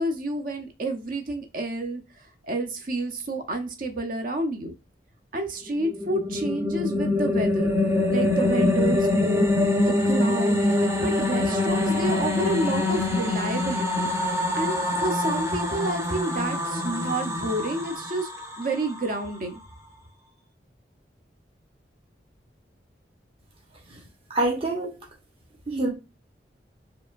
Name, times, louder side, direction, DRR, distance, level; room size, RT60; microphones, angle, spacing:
voice 1, 0.0-2.0 2.4-4.7 5.3-7.7 8.1-9.5 9.9-10.7 11.0-14.1 14.5-18.3 18.6-19.6, right 1 dB, 50° right, 0.8 m, -29 dB
sound 1, 5.8-19.1, left 2 dB, 15° right, 0.7 m, -24 dB
voice 2, 24.3-25.0 25.7-25.9, right 2 dB, 35° right, 1.1 m, -25 dB
4.8 x 3.0 x 2.5 m
head